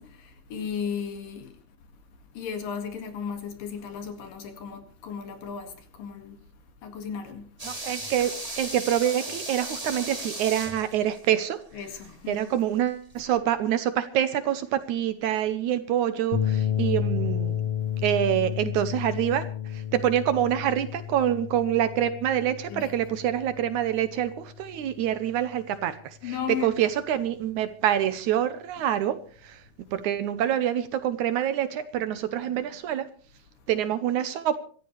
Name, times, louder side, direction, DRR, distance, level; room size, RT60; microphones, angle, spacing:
voice 1, 0.0-1.6 2.3-6.4 6.8-7.5 11.7-12.5 22.7-23.0 26.2-26.8, left 7 dB, 85° left, 3.8 m, -35 dB
sound 1, 7.6-12.6 12.9-13.0, right 2 dB, 10° right, 2.2 m, -36 dB
voice 2, 7.6-11.6 12.3-17.5 18.0-19.5 19.9-26.0 26.6-29.2 29.4-29.6 29.9-33.1 33.7-34.6, right 11 dB, 75° right, 2.1 m, -26 dB
sound 2, 16.3-24.8, left 10 dB, 55° left, 2.1 m, -31 dB
26.0 x 13.5 x 3.3 m
omnidirectional pair, 3.8 m